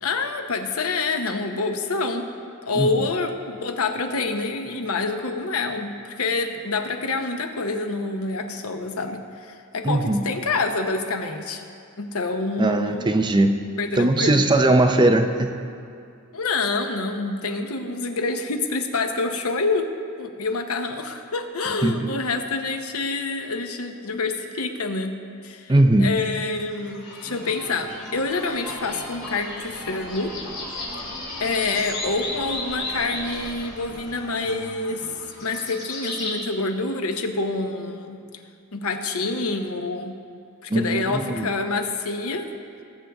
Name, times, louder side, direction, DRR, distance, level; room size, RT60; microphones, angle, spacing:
voice 1, 0.0-2.3 2.6-11.6 12.0-13.1 13.8-14.4 16.3-19.8 20.2-25.2 25.4-25.7 26.0-30.3 31.4-35.1 35.4-38.2 38.7-40.2 40.6-42.5, left 3 dB, 85° left, 5 dB, 0.9 m, -27 dB
voice 2, 9.8-10.3 12.6-13.6 13.9-15.5 21.8-22.0 25.7-26.1 40.7-41.5, right 2 dB, 20° right, 5 dB, 0.5 m, -19 dB
sound 1, 26.7-36.4, left 2 dB, 55° left, 3.2 m, -35 dB
18.5 x 7.6 x 3.5 m, 2.4 s
head